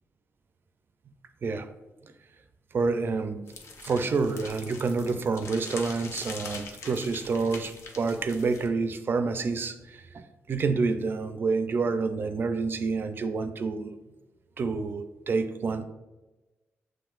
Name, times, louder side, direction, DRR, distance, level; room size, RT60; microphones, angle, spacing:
voice 1, 2.7-3.4 3.8-14.0 14.6-15.9, right 4 dB, 50° right, 9 dB, 0.4 m, -28 dB
sound 1, 3.5-8.7, left 4 dB, 80° left, 0.6 m, -43 dB
7.1 x 3.1 x 2.4 m, 1.1 s
cardioid pair, 105°, 5 cm